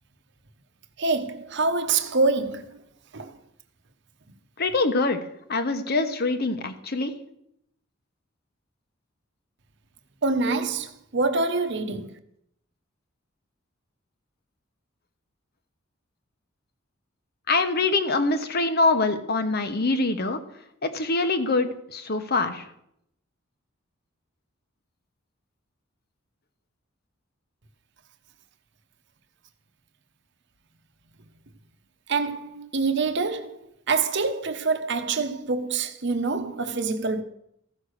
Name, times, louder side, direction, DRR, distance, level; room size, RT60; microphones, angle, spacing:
voice 1, 1.0-2.7 3.1-3.3 10.2-12.1 32.1-33.6 33.9-37.2, right 4 dB, 60° right, 1.0 m, -25 dB
voice 2, 4.6-5.2 5.5-7.1 17.5-20.4 20.8-22.6, left 3 dB, 50° left, 1.2 m, -24 dB
14.5 x 6.4 x 6.5 m
head